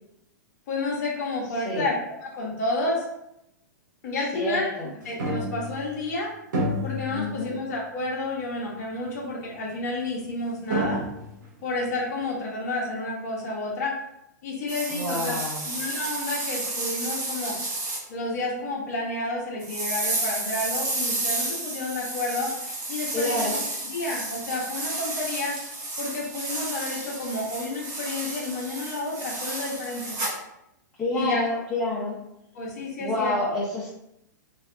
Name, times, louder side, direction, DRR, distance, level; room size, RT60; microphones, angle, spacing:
voice 1, 0.7-3.1 4.0-4.7 5.0-6.3 6.8-11.0 11.6-14.0 14.4-15.4 15.6-17.6 18.1-22.5 22.9-23.6 23.9-25.6 26.0-30.2 31.1-31.4 32.5-33.4, left 2 dB, 55° left, -3 dB, 0.9 m, -30 dB
voice 2, 4.3-4.9 7.1-7.5 14.9-15.7 23.1-23.6 31.0-32.2 33.0-33.9, left 2 dB, 15° left, -9 dB, 0.9 m, -28 dB
sound 1, 5.2-6.1 6.5-7.7 8.1-8.2 9.1-9.2 10.3-10.4 10.7-11.5, equal, 75° right, 1.0 m, -29 dB
sound 2, 14.7-18.0 19.6-30.4, right 2 dB, 35° right, 1.2 m, -31 dB
3.2 x 2.3 x 2.4 m, 0.83 s
hypercardioid pair, 125°, 10 cm